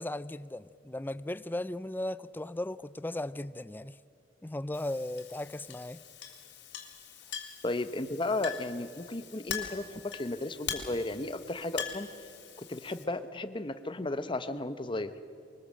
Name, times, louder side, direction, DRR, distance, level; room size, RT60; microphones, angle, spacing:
voice 1, 0.0-4.0 4.4-6.0, left 1 dB, 10° left, 0.4 m, -37 dB
Chink clink, 4.7-13.0, left 8 dB, 70° left, 3.3 m, -42 dB
voice 2, 7.6-12.1 12.6-15.1, left 2 dB, 30° left, 1.0 m, -34 dB
23.5 x 20.0 x 7.6 m
head